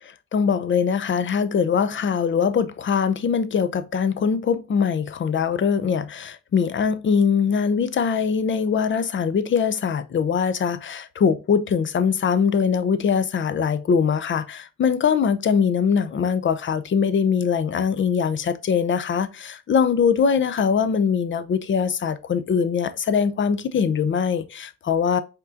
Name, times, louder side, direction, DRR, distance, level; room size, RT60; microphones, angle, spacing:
voice 1, 0.3-25.2, left 6 dB, 40° left, 0.6 m, -22 dB
5.4 x 3.7 x 2.5 m
cardioid pair, 90°, 30 cm